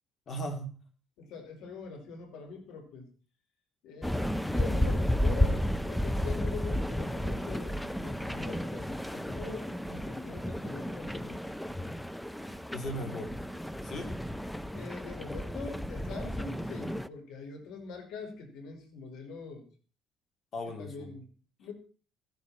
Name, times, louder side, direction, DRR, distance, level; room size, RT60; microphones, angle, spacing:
voice 1, 0.3-0.7 12.7-13.3 13.8-14.1 20.5-21.1, equal, 40° left, 5 dB, 3.5 m, -37 dB
voice 2, 1.2-3.1 3.8-11.5 14.7-19.7 20.6-21.3 21.6-21.7, left 4 dB, 90° left, 3 dB, 5.0 m, -43 dB
sound 1, 4.0-17.1, left 1 dB, 5° left, 0.6 m, -32 dB
15.5 x 15.0 x 4.3 m, 0.37 s
cardioid pair, 135°, 0 cm